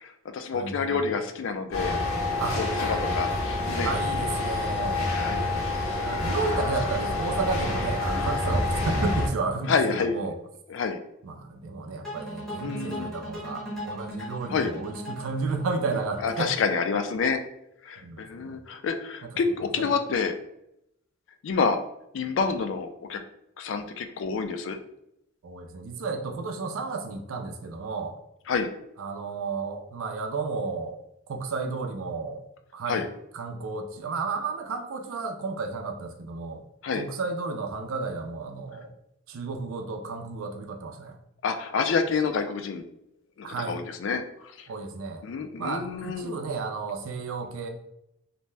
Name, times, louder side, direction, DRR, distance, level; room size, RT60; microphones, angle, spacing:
voice 1, 0.0-1.9 2.6-3.9 5.1-5.4 5.8-5.9 9.7-10.2 10.7-11.0 12.6-13.1 14.5-14.7 16.2-17.4 17.8-20.3 21.4-21.8 22.1-23.2 23.6-24.8 28.5-28.7 32.9-33.0 36.8-37.0 41.4-42.8 43.4-44.2 44.6-44.7 45.2-46.4, left 5 dB, 60° left, 8 dB, 0.3 m, -28 dB
voice 2, 0.5-1.0 2.4-2.6 3.1-3.2 3.8-5.1 6.0-10.4 11.2-16.5 18.0-18.6 19.2-19.3 19.8-19.9 25.4-28.1 29.0-31.0 31.3-32.4 32.7-33.1 33.3-36.6 36.9-38.9 39.3-41.2 43.4-43.8 44.7-45.2 45.6-47.7, right 4 dB, 80° right, 5 dB, 0.4 m, -32 dB
sound 1, 1.7-9.3, left 2 dB, 85° left, 0.8 m, -27 dB
sound 2, 12.0-17.1, equal, ahead, 0.7 m, -38 dB
2.7 x 2.1 x 3.2 m, 0.81 s
head